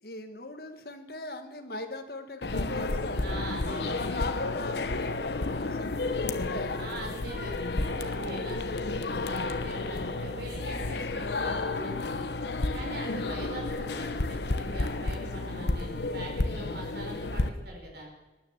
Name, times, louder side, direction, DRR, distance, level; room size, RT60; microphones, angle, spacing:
voice 1, 0.0-3.3 3.8-6.8 16.6-16.8, left 2 dB, 60° left, 6 dB, 1.5 m, -40 dB
sound 1, 2.4-17.5, left 2 dB, 75° left, 1.0 m, -31 dB
voice 2, 3.2-4.2 6.8-12.3 12.7-18.1, right 1 dB, 70° right, 0 dB, 4.6 m, -42 dB
19.0 x 9.8 x 7.3 m, 1.1 s
head